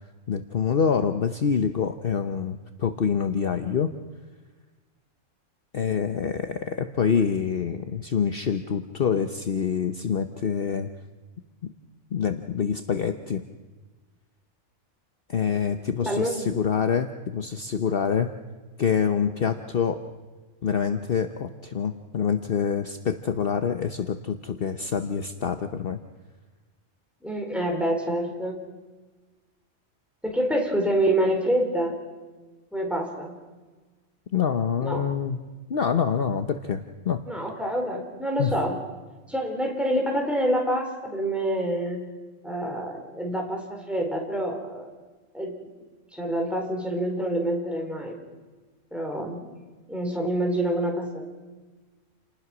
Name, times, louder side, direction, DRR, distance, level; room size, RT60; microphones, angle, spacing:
voice 1, 0.3-3.9 5.7-10.9 11.6-11.7 12.1-13.4 15.3-18.3 18.8-20.0 20.6-26.0 34.3-35.4 35.7-37.2 38.4-38.5, left 7 dB, 50° left, 8 dB, 1.1 m, -26 dB
voice 2, 16.0-16.6 27.2-28.7 30.2-32.0 32.7-33.4 34.8-35.1 37.3-38.8 39.3-42.1 42.4-44.9 45.3-45.7 46.1-48.2 48.9-49.5 49.9-51.2, right 1 dB, ahead, 1 dB, 4.2 m, -27 dB
29.0 x 19.5 x 6.2 m, 1.3 s
omnidirectional pair, 1.3 m